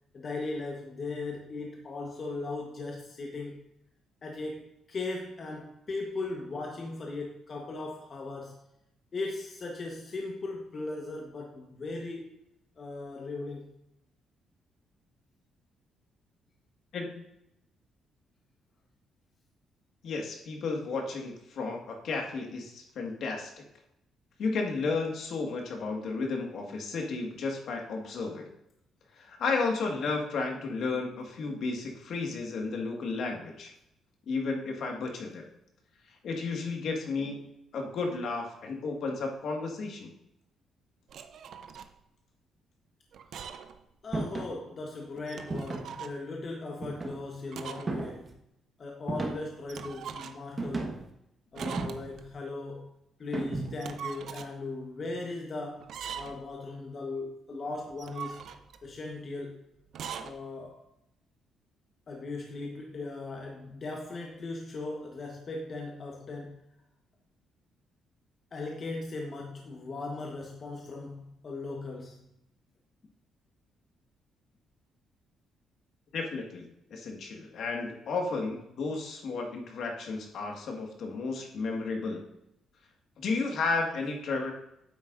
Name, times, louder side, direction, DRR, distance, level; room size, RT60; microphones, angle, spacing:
voice 1, 0.1-3.7 4.2-8.6 9.1-12.3 12.8-13.7 44.0-48.4 48.8-51.0 51.5-52.9 53.2-58.4 58.8-59.6 60.1-60.8 62.1-66.6 68.5-72.2, left 3 dB, 45° left, 1 dB, 1.2 m, -38 dB
voice 2, 16.9-17.3 20.0-23.6 24.4-28.5 29.1-33.7 34.3-35.4 36.1-40.1 76.1-76.6 76.9-82.2 83.2-84.5, left 4 dB, 70° left, 2 dB, 1.8 m, -33 dB
sound 1, 41.1-41.9 43.1-43.8 44.1-44.2 45.2-46.2 47.5-48.0 48.3-48.4 49.7-50.5 51.6-52.3 53.7-54.5 55.8-56.5 57.9-58.9 59.9-60.3, right 7 dB, 70° right, 0.6 m, -41 dB
sound 2, 44.1-44.6 45.5-46.0 46.8-47.4 47.9-48.3 49.1-49.6 50.6-51.1 51.6-52.2 53.3-53.9, right 3 dB, 30° right, 1.4 m, -35 dB
9.5 x 8.0 x 2.6 m, 0.83 s
cardioid pair, 90°, 0 cm